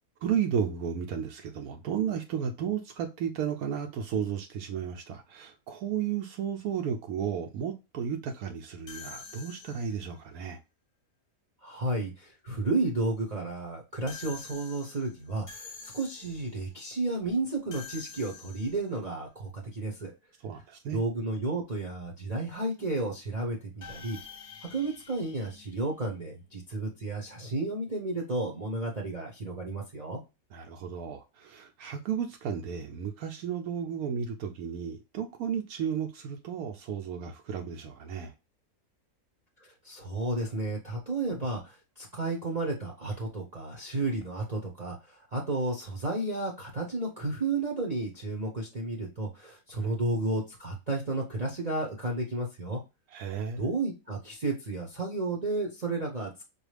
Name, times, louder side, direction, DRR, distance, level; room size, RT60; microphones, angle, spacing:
voice 1, 0.2-10.6 20.4-21.0 30.5-38.3 49.8-49.9 53.1-53.7, right 8 dB, 80° right, 1.1 m, -33 dB
sound 1, 8.9-10.1 14.1-16.6 17.7-19.0 23.8-26.4, left 5 dB, 40° left, 0.8 m, -47 dB
voice 2, 11.6-20.1 20.9-24.2 24.7-30.2 39.6-52.8 53.6-56.4, right 2 dB, 35° right, 0.7 m, -32 dB
4.8 x 2.3 x 3.1 m
omnidirectional pair, 1.6 m